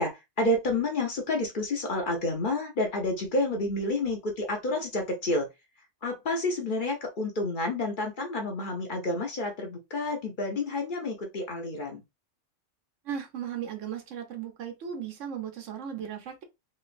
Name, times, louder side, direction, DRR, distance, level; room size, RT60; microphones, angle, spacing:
voice 1, 0.0-5.5 6.0-12.0, left 2 dB, 50° left, 0.8 m, -29 dB
voice 2, 13.0-16.4, right 8 dB, 70° right, 1.1 m, -36 dB
3.1 x 2.9 x 2.5 m
omnidirectional pair, 1.3 m